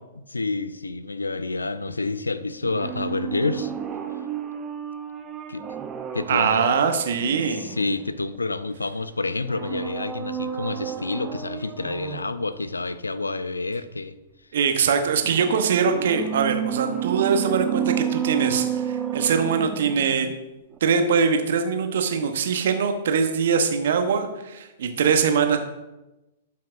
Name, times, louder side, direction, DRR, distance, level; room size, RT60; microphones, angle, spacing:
voice 1, 0.2-3.7 5.5-5.6 6.1-6.6 7.5-14.2, left 3 dB, 85° left, 13 dB, 0.4 m, -28 dB
sound 1, 2.6-8.4 9.4-12.4 15.2-20.4 20.7-20.8, right 9 dB, 25° right, 0.6 m, -31 dB
voice 2, 6.3-7.7 14.5-20.3 20.8-25.6, right 6 dB, 60° right, 6 dB, 1.0 m, -22 dB
11.5 x 5.8 x 2.6 m, 1.0 s
figure-of-eight pair, 110°, 0 cm